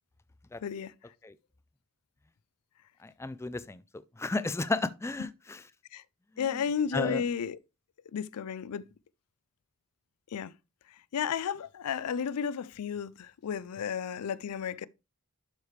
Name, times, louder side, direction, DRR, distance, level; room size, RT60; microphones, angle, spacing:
voice 1, 0.6-1.1 5.2-5.3 5.9-6.0 6.4-7.6 8.1-8.9 10.3-10.5 10.9-14.9, left 7 dB, 85° left, 0.4 m, -33 dB
voice 2, 3.0-3.8 4.2-5.6 6.4-6.5 6.9-7.2, left 2 dB, 10° left, 0.3 m, -33 dB
12.0 x 4.8 x 3.2 m
head